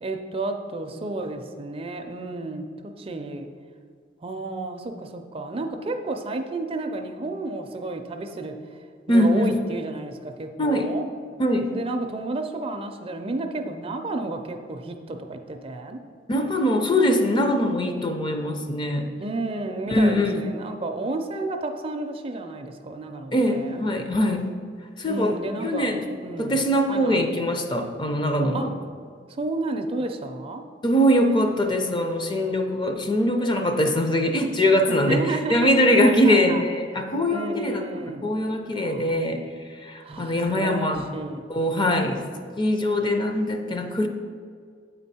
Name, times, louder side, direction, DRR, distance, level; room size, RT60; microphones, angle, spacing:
voice 1, 0.0-3.5 4.2-8.5 9.1-11.1 11.7-16.0 19.2-23.9 25.0-26.0 26.2-26.6 26.9-27.3 28.5-28.7 29.3-30.6 34.9-35.7 36.0-36.6 37.3-38.3 38.8-39.1 40.0-41.4, right 2 dB, 30° right, 5 dB, 0.4 m, -31 dB
voice 2, 9.1-9.5 10.6-10.9 11.4-11.7 16.3-19.1 19.9-20.4 23.3-24.5 25.0-26.0 26.4-28.7 30.8-39.4 39.8-41.1 41.5-42.3 42.6-44.1, equal, 25° left, 4 dB, 0.5 m, -22 dB
8.0 x 4.4 x 4.2 m, 2.1 s
head